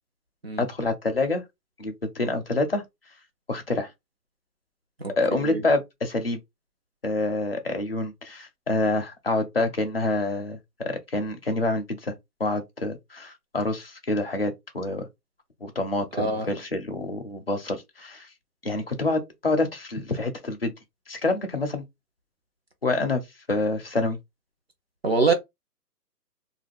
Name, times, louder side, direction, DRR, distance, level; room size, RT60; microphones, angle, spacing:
voice 1, 0.6-1.4 1.8-2.8 3.5-3.9 5.2-6.4 7.0-12.1 12.4-15.1 15.6-18.3 18.6-20.7 21.1-21.8 22.8-24.2, left 2 dB, 40° left, 0.4 m, -27 dB
voice 2, 5.0-5.6 16.1-16.5 25.0-25.3, right 4 dB, 40° right, 0.5 m, -25 dB
2.3 x 2.3 x 3.3 m
hypercardioid pair, 170°, 48 cm